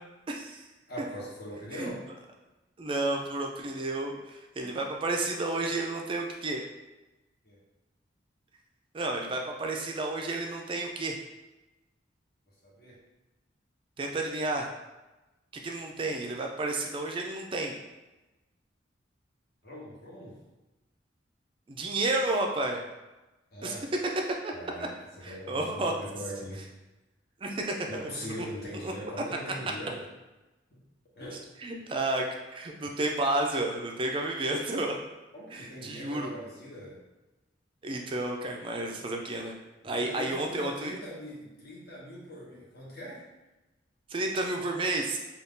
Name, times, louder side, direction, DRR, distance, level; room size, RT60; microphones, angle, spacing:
voice 1, 0.3-0.7 1.7-1.9 2.8-6.6 8.9-11.2 14.0-14.7 15.6-17.7 21.7-22.8 23.6-23.8 24.4-24.5 25.2-25.9 27.4-28.1 28.8-29.2 31.6-35.0 35.5-36.3 37.8-39.6 39.8-41.0 44.1-45.2, right 2 dB, 30° right, 1 dB, 0.3 m, -31 dB
voice 2, 0.9-2.0 7.4-7.6 12.6-13.0 19.6-20.4 23.5-23.9 24.5-26.6 27.9-30.1 30.7-30.8 31.2-31.5 32.8-32.9 35.3-37.0 39.8-43.2, equal, 60° left, -5 dB, 1.0 m, -41 dB
2.6 x 2.3 x 3.5 m, 1.1 s
head